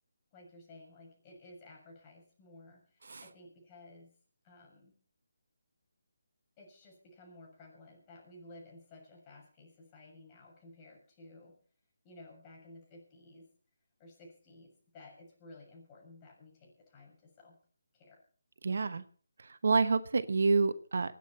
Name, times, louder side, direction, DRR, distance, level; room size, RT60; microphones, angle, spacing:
voice 1, 0.3-4.1 4.4-4.9 6.6-11.6 12.0-13.5 14.0-17.6 17.9-18.2, left 2 dB, 20° left, -1 dB, 7.0 m, -55 dB
voice 2, 18.6-19.0 19.6-21.2, right 4 dB, 65° right, 12 dB, 1.1 m, -28 dB
26.5 x 9.5 x 4.4 m, 0.42 s
figure-of-eight pair, 160°, 0 cm